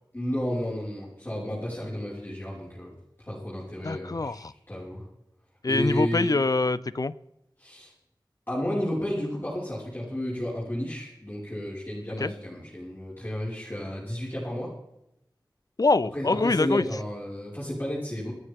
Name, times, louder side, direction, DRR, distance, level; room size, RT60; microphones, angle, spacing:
voice 1, 0.1-2.9 3.2-5.0 5.7-6.3 7.6-7.9 8.5-14.7 16.1-18.3, equal, 25° left, -7 dB, 5.5 m, -32 dB
voice 2, 3.8-4.5 5.6-7.1 12.2-12.3 15.8-16.8, left 3 dB, 50° left, 17 dB, 0.6 m, -24 dB
27.5 x 9.7 x 3.7 m, 0.85 s
wide cardioid pair, 60°, 8 cm